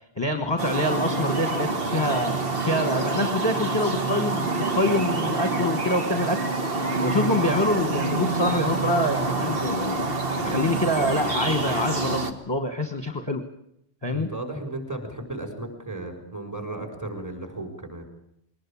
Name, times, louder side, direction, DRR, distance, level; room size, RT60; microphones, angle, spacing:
voice 1, 0.2-2.3 2.6-6.5 7.0-10.0 10.3-13.4 14.0-14.3, left 1 dB, 25° left, 7 dB, 1.4 m, -26 dB
sound 1, 0.6-12.3, right 3 dB, 55° right, 1.9 m, -27 dB
voice 2, 14.1-18.1, right 2 dB, 15° right, 6 dB, 4.9 m, -35 dB
22.0 x 19.0 x 8.5 m, 0.75 s
omnidirectional pair, 1.1 m